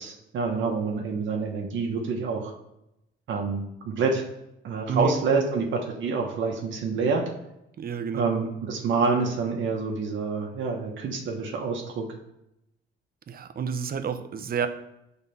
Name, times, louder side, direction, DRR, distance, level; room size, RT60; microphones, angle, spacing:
voice 1, 0.0-2.5 3.3-4.2 4.6-7.3 8.1-12.0, right 4 dB, 70° right, 1 dB, 1.1 m, -27 dB
voice 2, 7.8-8.3 13.3-14.7, right 7 dB, 50° right, 9 dB, 0.7 m, -29 dB
7.2 x 4.0 x 5.6 m, 0.86 s
cardioid pair, 90°, 20 cm